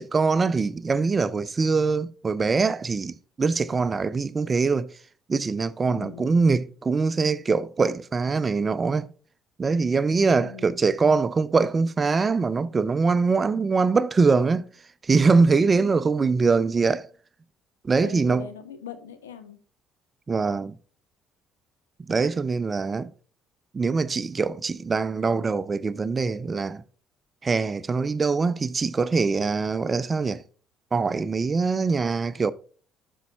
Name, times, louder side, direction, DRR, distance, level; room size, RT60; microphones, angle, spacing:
voice 1, 0.0-4.9 5.3-9.1 9.6-14.6 15.0-17.1 17.8-18.4 20.3-20.8 22.1-23.1 23.7-26.8 27.4-30.4 30.9-32.5, right 4 dB, 30° right, 0.5 m, -23 dB
voice 2, 5.9-6.4 10.3-10.6 18.0-19.6, left 8 dB, 90° left, 0.8 m, -40 dB
12.5 x 5.5 x 2.4 m
hypercardioid pair, 55°, 0 cm